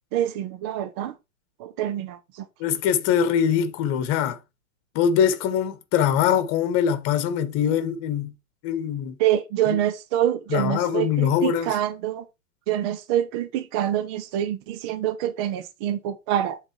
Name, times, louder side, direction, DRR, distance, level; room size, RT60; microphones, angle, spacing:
voice 1, 0.1-1.2 1.6-2.5 9.2-12.2 12.7-16.6, right 11 dB, 20° right, 0.3 m, -26 dB
voice 2, 2.6-4.4 4.9-8.3 8.6-9.2 9.7-9.8 10.5-11.7, left 8 dB, 35° left, 1.2 m, -23 dB
8.0 x 4.0 x 4.6 m
figure-of-eight pair, 110°, 41 cm